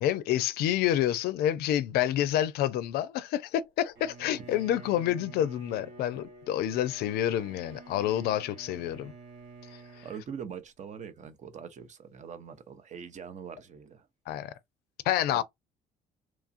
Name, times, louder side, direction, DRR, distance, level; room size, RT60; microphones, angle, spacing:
voice 1, 0.0-9.1 9.7-10.1 14.3-14.5 15.1-15.4, left 12 dB, 70° left, 0.4 m, -28 dB
Bowed string instrument, 4.0-10.2, right 4 dB, 75° right, 1.8 m, -49 dB
voice 2, 10.0-14.1 15.3-15.4, right 7 dB, 45° right, 0.7 m, -43 dB
3.0 x 2.3 x 2.5 m
supercardioid pair, 65°, 17 cm